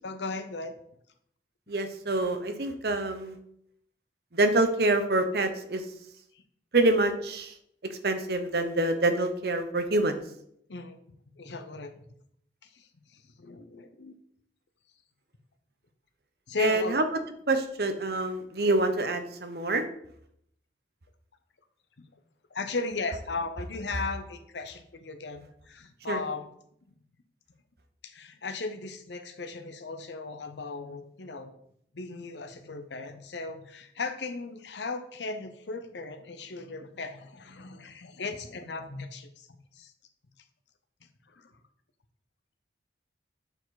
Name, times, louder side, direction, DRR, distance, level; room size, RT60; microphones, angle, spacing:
voice 1, 0.0-0.7 6.3-6.4 10.7-10.9 11.4-11.9 12.7-14.1 16.5-17.0 22.5-26.5 28.0-31.5 31.9-39.5 39.7-39.9 41.3-41.5, left 3 dB, 80° left, 7 dB, 0.8 m, -36 dB
voice 2, 1.7-3.4 4.3-5.8 6.7-7.5 7.9-10.2 16.6-17.1 17.5-19.8 26.1-26.2, right 2 dB, 60° right, 8 dB, 0.8 m, -26 dB
6.9 x 4.7 x 4.0 m, 0.70 s
head